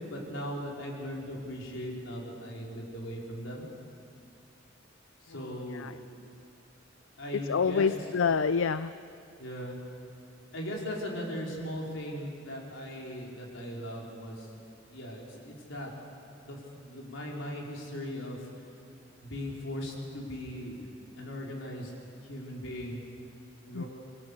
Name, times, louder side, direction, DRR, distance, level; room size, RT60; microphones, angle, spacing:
voice 1, 0.0-3.6 5.2-6.0 7.2-7.9 9.4-9.8 10.5-14.5 14.9-15.9 16.4-18.5 19.2-20.9 21.2-21.9 22.2-23.0 23.7-23.9, equal, 70° left, -1 dB, 4.7 m, -38 dB
voice 2, 7.5-8.9 23.7-23.8, left 5 dB, 90° left, 13 dB, 0.5 m, -27 dB
27.0 x 22.5 x 6.7 m, 2.5 s
head